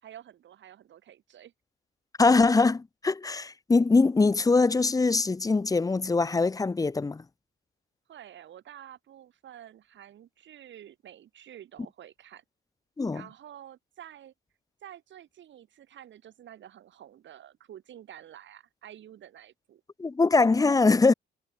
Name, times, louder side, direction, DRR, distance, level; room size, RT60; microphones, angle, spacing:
voice 1, 0.0-1.5 8.1-12.4 13.1-14.3 14.8-19.8, right 11 dB, 70° right, 3.4 m, -49 dB
voice 2, 2.2-7.2 13.0-13.2 20.0-21.1, left 3 dB, 15° left, 0.7 m, -22 dB
cardioid pair, 90°, 20 cm